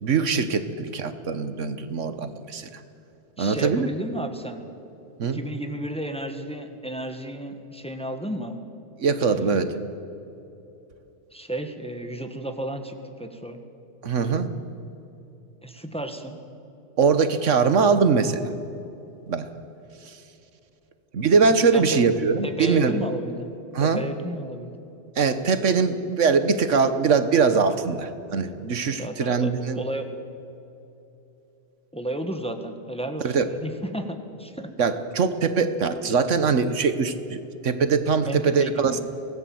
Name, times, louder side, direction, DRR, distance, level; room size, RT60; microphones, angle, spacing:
voice 1, 0.0-2.7 3.4-3.9 5.2-5.4 9.0-9.7 14.0-14.5 17.0-18.5 19.3-19.5 21.1-22.9 23.7-24.0 25.2-29.8 33.2-33.5 34.8-39.0, right 5 dB, 80° right, 11 dB, 1.5 m, -22 dB
voice 2, 3.4-4.6 5.2-8.6 9.2-9.6 11.3-13.6 15.6-16.4 21.7-22.0 22.4-23.5 23.8-24.8 28.9-30.1 31.9-34.7 38.2-39.0, right 1 dB, 5° left, 6 dB, 1.5 m, -33 dB
23.5 x 18.5 x 7.8 m, 2.9 s
omnidirectional pair, 1.2 m